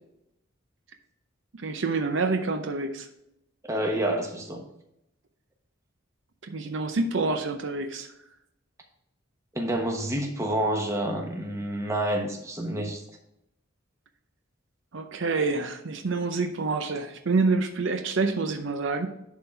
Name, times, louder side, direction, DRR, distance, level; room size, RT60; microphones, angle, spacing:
voice 1, 1.5-3.1 6.4-8.1 14.9-19.1, right 3 dB, 60° right, 6 dB, 0.6 m, -27 dB
voice 2, 3.6-4.7 9.5-13.0, right 1 dB, 15° right, 2 dB, 1.0 m, -28 dB
11.0 x 3.8 x 4.5 m, 0.83 s
head